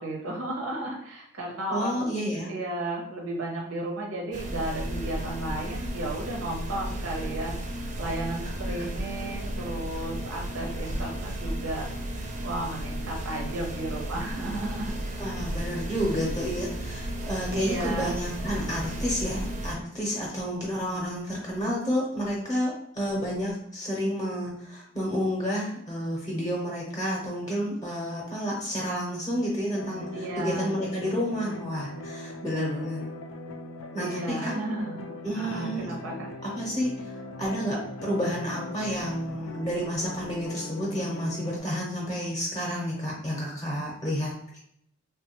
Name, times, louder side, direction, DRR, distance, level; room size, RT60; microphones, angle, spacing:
voice 1, 0.0-2.1 2.5-12.1 12.4-15.0 17.5-18.2 30.1-30.7 34.0-36.3, right 1 dB, 85° right, -1 dB, 0.6 m, -34 dB
voice 2, 1.7-2.5 8.7-8.8 15.2-33.1 33.9-34.5 35.2-35.9 36.6-44.6, equal, 20° left, -4 dB, 0.6 m, -30 dB
sound 1, 4.3-19.7, right 1 dB, 35° right, 0.4 m, -34 dB
sound 2, 29.7-41.6, left 2 dB, 80° left, 0.4 m, -40 dB
3.3 x 2.2 x 2.8 m, 0.73 s
head